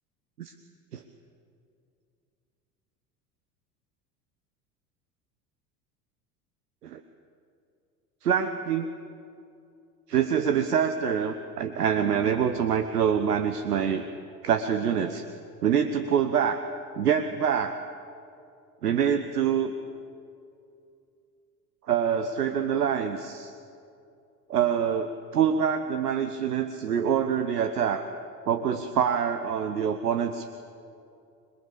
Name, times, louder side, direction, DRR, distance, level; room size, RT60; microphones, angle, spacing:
voice 1, 8.2-8.9 10.1-14.0 14.4-15.2 15.6-16.6 17.0-17.8 18.8-19.7 21.9-23.5 24.5-28.1 28.5-30.5, right 8 dB, 70° right, 9 dB, 1.3 m, -25 dB
26.5 x 22.0 x 8.5 m, 2.5 s
figure-of-eight pair, 70°, 48 cm